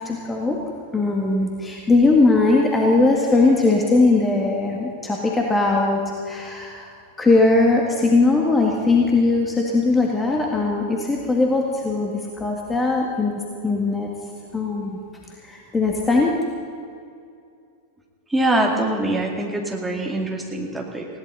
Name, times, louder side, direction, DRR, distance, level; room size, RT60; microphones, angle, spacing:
voice 1, 0.1-0.6 0.9-6.0 6.3-6.9 7.2-14.1 14.5-15.0 15.4-16.4, left 3 dB, 15° left, -1 dB, 2.0 m, -19 dB
voice 2, 18.3-21.1, right 1 dB, 5° right, -1 dB, 2.6 m, -23 dB
20.0 x 17.5 x 4.1 m, 2.4 s
figure-of-eight pair, 90°, 0 cm